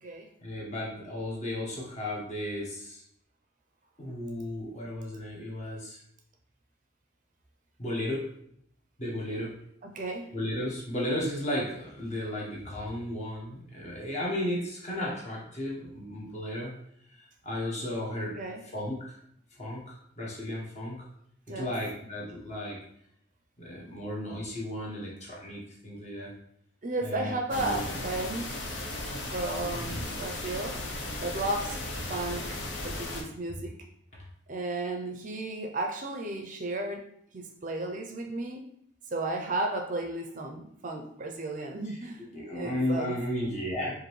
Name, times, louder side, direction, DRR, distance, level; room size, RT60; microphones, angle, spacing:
voice 1, 0.4-3.0 4.0-6.0 7.8-8.3 9.0-9.5 10.3-16.7 17.1-18.3 18.7-19.1 19.6-21.1 21.5-22.8 23.6-26.3 27.0-27.9 29.7-30.0 41.9-42.0 42.3-43.9, left 1 dB, 35° left, -3 dB, 1.1 m, -34 dB
voice 2, 9.9-10.3 18.4-18.6 21.5-21.7 26.8-28.5 29.3-30.7 31.2-31.8 32.1-32.5 32.8-33.7 34.5-37.0 37.3-38.6 39.1-42.3 42.5-43.2, right 2 dB, 40° right, 3 dB, 0.5 m, -33 dB
sound 1, 27.5-33.2, left 2 dB, 65° left, 0.8 m, -36 dB
5.0 x 2.6 x 3.2 m, 0.69 s
head